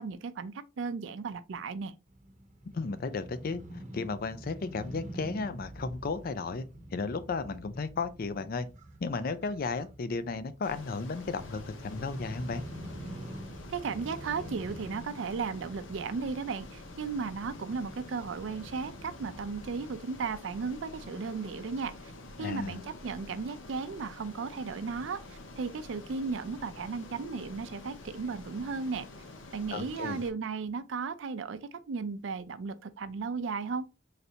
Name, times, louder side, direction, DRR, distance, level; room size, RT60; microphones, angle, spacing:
voice 1, 0.0-1.9 13.7-21.9 22.4-29.0 29.5-33.9, right 5 dB, 75° right, 0.4 m, -35 dB
Crow / Motorcycle, 2.1-19.9, right 1 dB, 40° right, 0.7 m, -47 dB
voice 2, 2.7-6.6 6.9-8.7 9.0-12.6 22.4-22.8 29.7-30.2, left 4 dB, 50° left, 0.4 m, -34 dB
Ocean, 10.6-30.3, left 2 dB, 80° left, 0.8 m, -48 dB
4.0 x 3.2 x 2.7 m
head